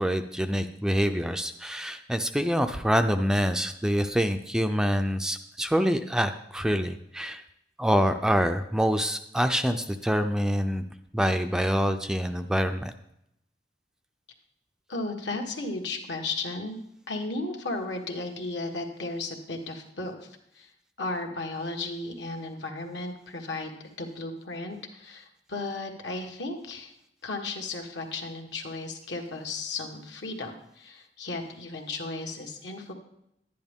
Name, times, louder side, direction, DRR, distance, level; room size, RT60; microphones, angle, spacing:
voice 1, 0.0-7.4 7.8-10.8 11.1-12.9, equal, 5° right, 7 dB, 0.4 m, -26 dB
voice 2, 14.9-16.8 17.1-20.3 20.5-20.7 21.0-23.7 24.0-26.9 27.2-32.9, left 2 dB, 75° left, 3 dB, 1.5 m, -35 dB
11.0 x 10.5 x 3.6 m, 0.79 s
head